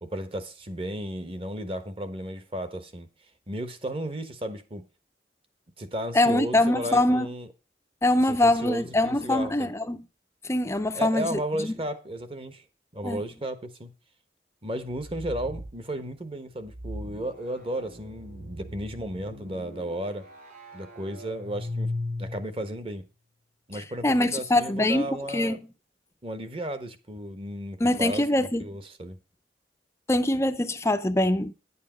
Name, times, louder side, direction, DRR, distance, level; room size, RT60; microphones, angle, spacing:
voice 1, 0.0-3.1 3.5-4.9 5.8-7.5 8.3-9.7 10.9-12.6 12.9-13.9 14.6-20.3 20.7-21.9 22.2-23.1 23.7-25.6 26.2-29.2, right 1 dB, 30° right, 1.2 m, -34 dB
voice 2, 6.1-7.3 8.0-10.0 10.4-11.7 13.0-13.2 23.7-25.6 27.8-28.7 30.1-31.5, left 1 dB, 15° left, 0.5 m, -24 dB
sound 1, 14.8-15.8 16.6-22.6, left 1 dB, 50° right, 5.2 m, -38 dB
10.0 x 8.5 x 5.1 m
head